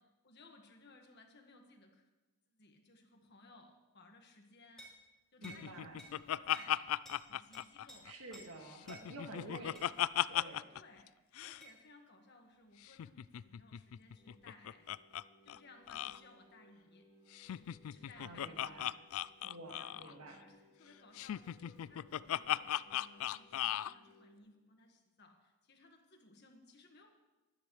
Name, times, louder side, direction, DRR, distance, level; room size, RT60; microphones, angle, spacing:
voice 1, 0.2-2.1 2.5-4.9 5.3-6.9 7.3-8.1 8.8-9.7 10.7-11.1 11.4-15.0 15.4-17.1 17.5-18.8 19.8-27.1, left 3 dB, 50° left, 3 dB, 1.6 m, -61 dB
sound 1, 4.8-5.0 5.4-5.6 6.0-6.1 6.5-6.7 7.0-7.2 7.5-8.0 8.3-8.5 8.9-9.0 9.7-9.9 11.6-11.8, right 1 dB, ahead, 3.4 m, -53 dB
Laughter, 5.4-8.4 8.7-10.8 11.1-11.2 11.4-11.6 12.9-15.2 15.5-15.6 15.9-16.2 17.3-20.1 21.2-23.9, left 12 dB, 70° left, 0.3 m, -37 dB
voice 2, 5.4-6.0 8.0-9.8 10.3-10.7 18.2-18.9 19.4-20.4, right 2 dB, 80° right, 2 dB, 1.9 m, -50 dB
sound 2, 14.2-24.4, equal, 25° left, 3.2 m, -66 dB
22.5 x 10.0 x 3.2 m, 1.1 s
head